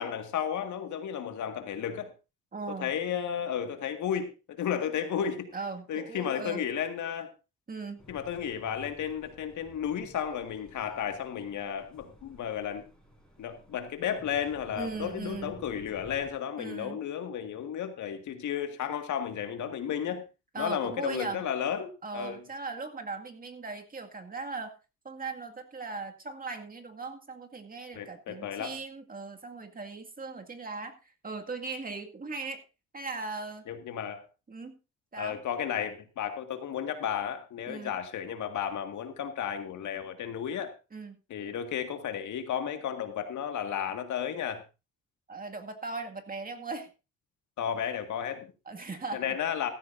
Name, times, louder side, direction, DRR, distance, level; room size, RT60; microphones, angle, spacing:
voice 1, 0.0-2.1 2.7-5.5 5.9-7.3 8.1-12.8 13.4-20.2 20.6-22.4 27.9-28.7 33.7-34.3 35.2-40.7 41.3-44.6 47.6-48.5 49.1-49.7, left 8 dB, 75° left, 1.9 m, -33 dB
voice 2, 2.5-2.9 5.5-6.6 7.7-8.0 14.7-15.5 16.6-17.0 20.5-21.4 22.0-24.8 25.0-32.6 32.9-33.6 34.5-34.8 35.1-35.4 37.7-37.9 40.9-41.2 45.3-46.9 48.7-49.4, right 3 dB, 30° right, 2.1 m, -38 dB
sound 1, 8.0-16.3, equal, ahead, 5.1 m, -53 dB
15.0 x 13.0 x 2.6 m
cardioid pair, 90°, 30 cm